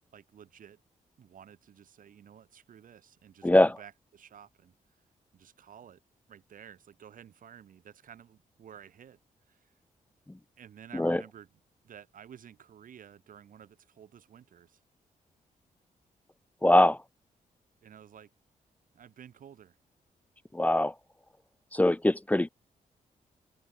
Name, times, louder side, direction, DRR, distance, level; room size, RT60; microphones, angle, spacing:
voice 1, 0.1-0.8 1.2-4.7 5.3-6.0 6.3-9.2 9.5-9.7 10.6-11.5 11.8-14.8 17.8-18.3 18.9-19.8, right 9 dB, 70° right, 4.9 m, -52 dB
voice 2, 3.4-3.8 10.9-11.2 16.6-17.0 20.5-20.9 21.7-22.5, left 1 dB, 10° left, 1.2 m, -22 dB
cardioid pair, 115°, 14 cm